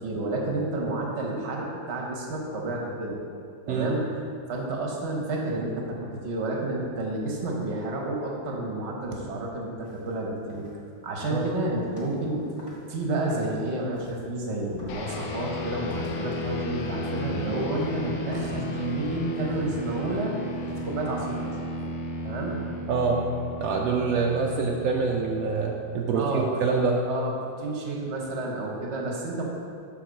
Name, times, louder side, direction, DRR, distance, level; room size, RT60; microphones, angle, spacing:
voice 1, 0.0-3.2 3.7-4.1 4.5-10.7 11.0-20.4 20.8-21.6 22.2-22.6 26.1-26.7 27.1-29.5, right 2 dB, 45° right, -1 dB, 1.0 m, -30 dB
sound 1, 9.8-10.0 10.5-10.9 11.2-12.3 12.6-12.9 13.3-14.3 14.7-15.4 15.9-16.5 16.8-17.8 18.3-19.1 19.5-20.2 20.7-21.0, equal, 15° left, 1.2 m, -42 dB
sound 2, 14.9-26.6, left 1 dB, 65° left, 1.0 m, -34 dB
voice 2, 22.9-23.2 23.6-27.0, right 4 dB, 75° right, -1 dB, 0.8 m, -25 dB
6.5 x 3.8 x 6.3 m, 2.4 s
omnidirectional pair, 2.1 m